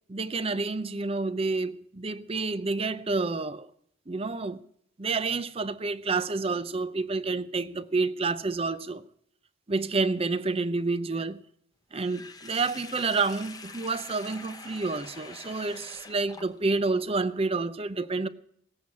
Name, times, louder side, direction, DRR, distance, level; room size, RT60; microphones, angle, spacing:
voice 1, 0.1-3.7 4.1-4.6 5.0-9.0 9.7-11.4 11.9-18.3, right 3 dB, 25° right, 0.6 m, -29 dB
Sink (filling or washing), 11.9-16.9, left 4 dB, 20° left, 0.8 m, -45 dB
18.0 x 8.0 x 8.4 m
head